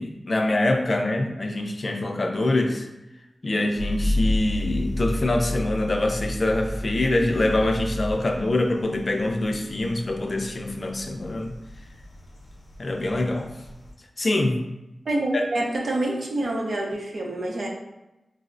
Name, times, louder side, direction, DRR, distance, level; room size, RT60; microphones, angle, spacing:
voice 1, 0.0-2.9 3.4-11.5 12.8-13.5 14.2-14.6 15.3-15.4, left 2 dB, 45° left, 3 dB, 0.4 m, -24 dB
sound 1, 3.8-13.9, left 1 dB, 90° left, 0.7 m, -32 dB
voice 2, 15.1-17.7, right 1 dB, 75° right, -1 dB, 0.6 m, -27 dB
4.4 x 2.0 x 2.5 m, 0.96 s
wide cardioid pair, 75°, 0 cm